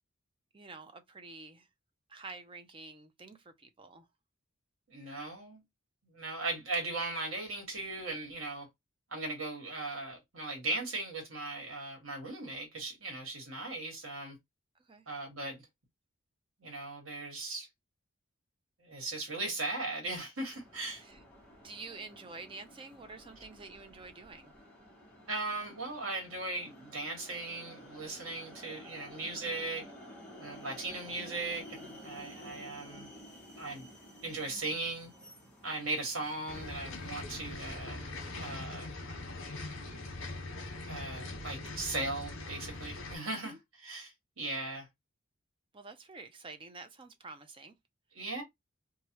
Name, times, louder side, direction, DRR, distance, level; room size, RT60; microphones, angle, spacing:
voice 1, 0.5-1.7 2.1-4.1 14.9-15.0 21.0-21.2 21.6-24.5 43.4-43.6 45.7-47.8, right 3 dB, 25° right, 0.4 m, -48 dB
voice 2, 4.9-5.6 6.0-8.7 9.1-14.3 15.1-15.6 16.6-17.7 18.8-21.0 25.3-29.8 30.4-33.1 33.6-33.9 34.2-35.1 35.6-38.1 38.4-38.9 40.9-44.9 48.1-48.4, right 2 dB, 80° right, 1.6 m, -38 dB
sound 1, 20.4-37.9, equal, 5° left, 0.9 m, -52 dB
sound 2, 36.5-43.2, left 2 dB, 65° left, 1.1 m, -42 dB
3.1 x 2.3 x 2.9 m
head